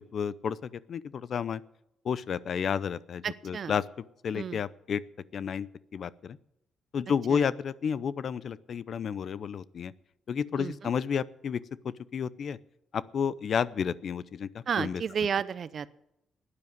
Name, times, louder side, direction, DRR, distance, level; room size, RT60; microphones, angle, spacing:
voice 1, 0.0-1.6 2.0-3.8 4.2-5.0 5.3-6.4 6.9-9.9 10.3-12.6 12.9-15.0, left 7 dB, 55° left, 19 dB, 0.5 m, -31 dB
voice 2, 3.2-3.7 4.3-4.6 7.3-7.5 10.6-10.7 14.7-15.9, right 7 dB, 50° right, 17 dB, 0.7 m, -32 dB
12.5 x 9.9 x 9.3 m, 0.82 s
cardioid pair, 100°, 0 cm